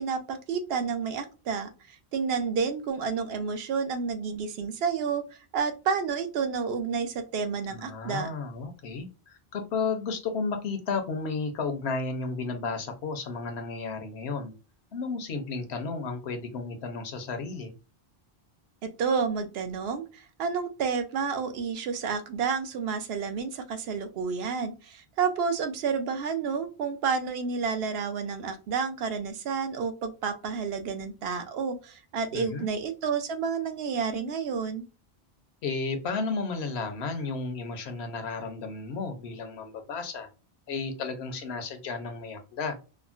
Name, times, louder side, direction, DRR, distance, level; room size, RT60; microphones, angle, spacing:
voice 1, 0.0-5.2 5.5-8.3 18.8-34.8, right 5 dB, 70° right, 9 dB, 0.8 m, -30 dB
voice 2, 7.7-14.5 14.9-17.7 32.3-32.7 35.6-40.3 40.7-42.8, left 4 dB, 80° left, 6 dB, 1.0 m, -33 dB
3.5 x 2.0 x 2.4 m, 0.32 s
omnidirectional pair, 1.1 m